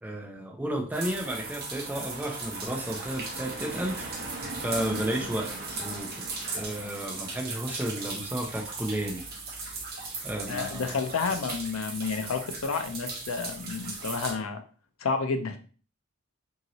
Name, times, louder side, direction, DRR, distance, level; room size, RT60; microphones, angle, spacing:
voice 1, 0.0-4.2 4.6-6.1 6.5-9.2 10.2-10.9, right 1 dB, 10° right, 1 dB, 0.5 m, -33 dB
sound 1, 0.9-14.3, right 3 dB, 50° right, 0.8 m, -37 dB
voice 2, 10.5-14.6 15.0-15.6, left 5 dB, 90° left, 7 dB, 0.5 m, -30 dB
2.9 x 2.8 x 2.7 m, 0.39 s
head